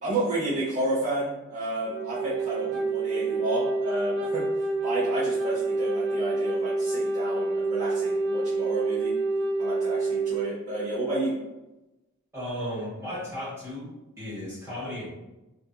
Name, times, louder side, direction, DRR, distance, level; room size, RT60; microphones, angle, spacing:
voice 1, 0.0-4.4 4.8-9.1 9.6-11.3, right 2 dB, 35° right, -10 dB, 0.8 m, -31 dB
Wind instrument woodwind instrument, 1.9-10.5, right 3 dB, 50° right, 0.3 m, -27 dB
voice 2, 12.3-15.1, left 1 dB, 10° right, -10 dB, 1.4 m, -35 dB
2.7 x 2.6 x 2.3 m, 1.0 s
head